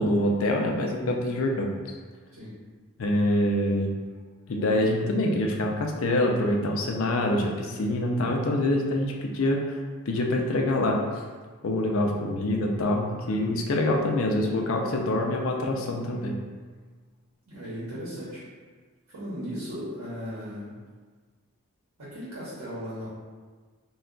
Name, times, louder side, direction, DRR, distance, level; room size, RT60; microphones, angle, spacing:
voice 1, 0.0-1.7 3.0-3.9 4.5-9.8 10.1-11.0 11.6-16.3, left 1 dB, 60° left, 1 dB, 0.4 m, -25 dB
voice 2, 17.5-18.4 19.1-20.7 22.0-23.1, equal, 90° right, -9 dB, 0.9 m, -36 dB
2.3 x 2.2 x 3.7 m, 1.4 s
head